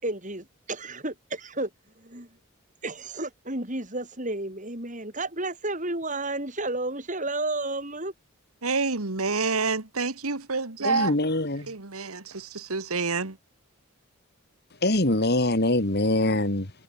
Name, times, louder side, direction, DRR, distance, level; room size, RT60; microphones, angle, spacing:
voice 1, 0.0-1.7 2.0-2.3 2.8-8.1, right 2 dB, 35° right, 6.4 m, -32 dB
voice 2, 8.6-11.1 11.7-13.4, right 4 dB, 80° right, 2.0 m, -28 dB
voice 3, 10.8-11.7 14.8-16.7, left 1 dB, 50° left, 2.5 m, -23 dB
head